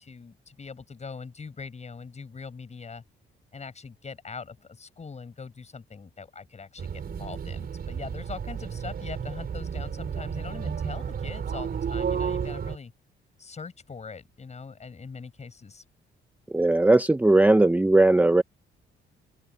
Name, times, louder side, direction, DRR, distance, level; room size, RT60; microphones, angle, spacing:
voice 1, 0.0-3.0 3.5-12.9 13.4-15.8, left 5 dB, 35° left, 6.0 m, -42 dB
sound 1, 6.8-12.8, right 7 dB, 50° right, 4.2 m, -32 dB
voice 2, 16.5-18.4, right 2 dB, 10° right, 0.7 m, -18 dB
open air
cardioid pair, 90°, 20 cm